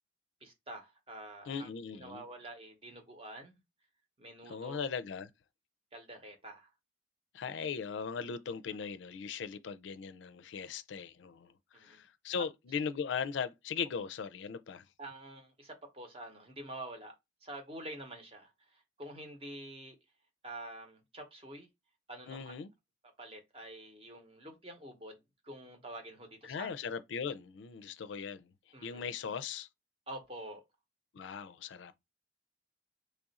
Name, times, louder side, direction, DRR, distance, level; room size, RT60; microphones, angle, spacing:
voice 1, 0.4-3.6 4.2-4.8 5.9-6.7 11.7-12.0 12.4-12.5 15.0-17.1 17.4-20.0 20.4-21.7 22.1-22.6 23.2-25.2 25.4-26.7 28.7-29.1 30.1-30.6, right 1 dB, 30° right, 0.8 m, -47 dB
voice 2, 1.5-2.2 4.5-5.3 7.3-11.5 11.8-14.8 22.3-22.7 26.4-28.5 28.8-29.7 31.1-31.9, left 6 dB, 80° left, 0.4 m, -39 dB
3.2 x 2.4 x 4.0 m
head